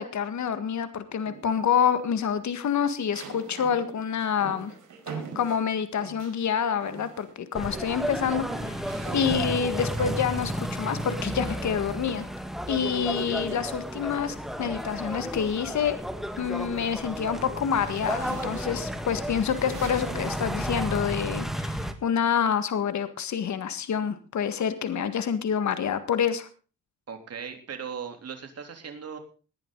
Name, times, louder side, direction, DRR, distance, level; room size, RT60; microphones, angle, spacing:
voice 1, 0.0-4.7 5.1-12.3 12.7-16.0 16.4-26.5, left 7 dB, 60° left, 11 dB, 1.8 m, -27 dB
sound 1, 1.2-1.8 3.1-6.4 6.8-7.3 7.6-12.0 13.2-14.6 15.1-15.3 15.7-20.5, right 5 dB, 70° right, 5.0 m, -43 dB
sound 2, 7.5-21.9, equal, ahead, 1.8 m, -33 dB
voice 2, 27.1-29.2, right 7 dB, 50° right, 5 dB, 3.4 m, -38 dB
19.5 x 11.0 x 3.9 m, 0.35 s
cardioid pair, 95°, 32 cm